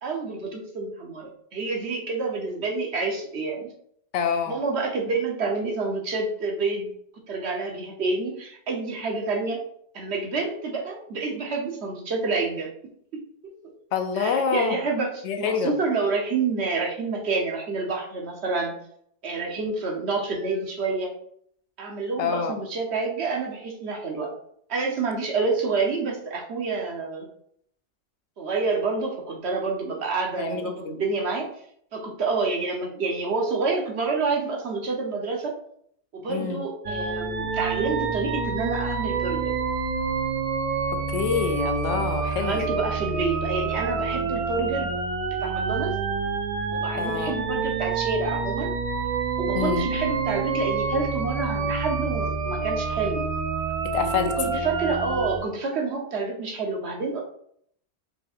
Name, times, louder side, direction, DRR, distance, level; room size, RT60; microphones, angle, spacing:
voice 1, 0.0-3.7 4.5-6.9 7.3-9.6 9.9-12.7 14.1-18.8 19.2-21.1 21.8-24.3 24.7-27.3 28.4-31.5 31.9-35.5 36.1-39.5 42.3-45.0 45.4-46.0 46.7-48.7 49.4-53.3 54.4-57.2, right 4 dB, 70° right, 0 dB, 1.2 m, -28 dB
voice 2, 4.1-4.6 13.9-14.8 15.2-15.7 22.2-22.6 30.4-30.9 36.3-36.6 40.9-42.7 47.0-47.3 49.5-49.8 53.8-54.3, left 6 dB, 85° left, 6 dB, 0.9 m, -26 dB
sound 1, 36.8-55.4, right 4 dB, 55° right, 0.4 m, -28 dB
4.5 x 4.2 x 2.4 m, 0.68 s
omnidirectional pair, 1.1 m